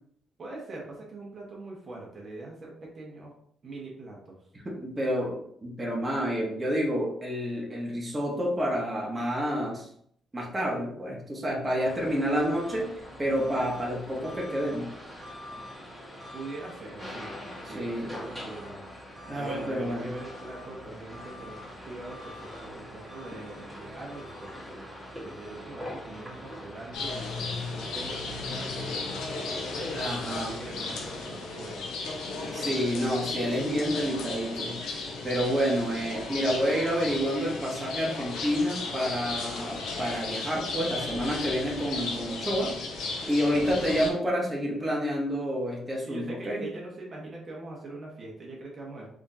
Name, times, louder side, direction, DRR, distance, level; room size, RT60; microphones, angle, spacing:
voice 1, 0.4-3.3 3.6-4.4 16.3-17.3 17.7-18.8 19.3-24.8 25.2-29.2 29.7-31.9 43.5-43.9 46.1-49.1, right 2 dB, 40° right, -2 dB, 1.1 m, -42 dB
voice 2, 4.6-9.9 10.3-12.9 13.2-14.9 17.7-18.1 19.3-20.1 29.9-30.5 32.5-34.8 35.2-42.8 43.3-46.6, equal, 20° right, -3 dB, 1.1 m, -29 dB
sound 1, 11.8-31.6, equal, 5° left, 1.7 m, -43 dB
sound 2, 26.9-44.1, left 3 dB, 85° left, 0.8 m, -35 dB
3.6 x 3.6 x 2.7 m, 0.66 s
cardioid pair, 90°, 0 cm